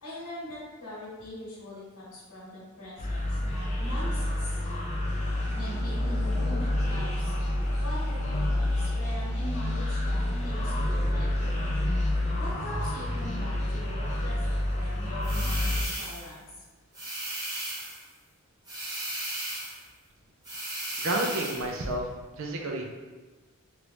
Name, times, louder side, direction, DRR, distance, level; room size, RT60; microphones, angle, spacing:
voice 1, 0.0-4.6 5.5-7.3 7.8-11.6 12.4-16.4, left 1 dB, 80° left, -8 dB, 1.0 m, -42 dB
sound 1, 3.0-15.8, left 1 dB, 30° left, 0.6 m, -28 dB
sound 2, 15.2-16.3 16.9-18.0 18.7-19.8 20.4-21.7, right 1 dB, 20° right, 1.0 m, -35 dB
voice 2, 21.0-22.0 22.4-22.8, right 1 dB, 60° right, 1 dB, 0.5 m, -30 dB
3.0 x 2.5 x 3.3 m, 1.3 s
head